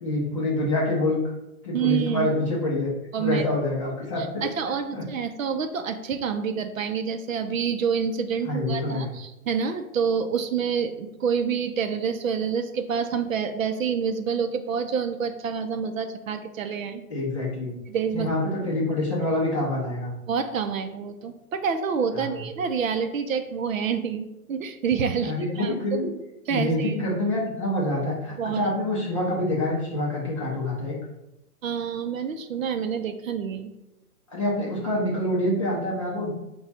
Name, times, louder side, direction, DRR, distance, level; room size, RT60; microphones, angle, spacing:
voice 1, 0.0-1.2 1.6-2.9 3.2-4.5 4.9-5.0 8.4-9.1 17.1-17.7 18.1-20.1 22.1-22.3 25.2-26.1 26.5-31.0 34.3-36.3, left 1 dB, 20° left, -4 dB, 0.6 m, -26 dB
voice 2, 1.7-2.3 3.1-3.4 4.2-17.0 17.9-18.3 20.3-26.0 26.5-26.9 28.4-28.7 31.6-33.7, right 6 dB, 60° right, 8 dB, 0.6 m, -27 dB
4.9 x 2.3 x 4.0 m, 0.89 s
hypercardioid pair, 155°, 45 cm